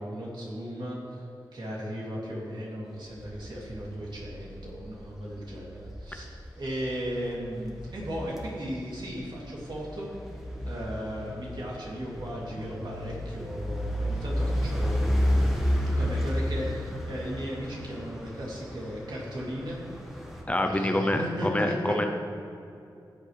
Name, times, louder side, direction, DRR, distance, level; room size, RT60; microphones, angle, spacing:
voice 1, 0.0-10.1 10.6-15.1 15.9-19.8 20.6-22.0, equal, 65° right, -5 dB, 2.8 m, -36 dB
sound 1, 3.0-20.4, equal, 5° right, 1.3 m, -32 dB
voice 2, 20.5-22.1, left 1 dB, 15° left, 4 dB, 0.6 m, -26 dB
15.5 x 8.2 x 3.3 m, 2.6 s
wide cardioid pair, 125°, 8 cm